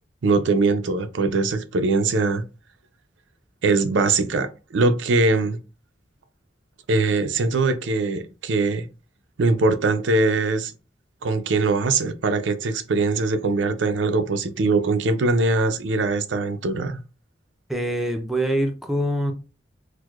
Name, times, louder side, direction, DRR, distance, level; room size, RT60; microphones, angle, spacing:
voice 1, 0.2-2.4 3.6-5.6 6.9-8.9 9.4-10.7 11.2-17.0, right 3 dB, 90° right, 0.5 m, -22 dB
voice 2, 17.7-19.3, right 1 dB, ahead, 0.5 m, -24 dB
4.5 x 2.1 x 2.3 m
head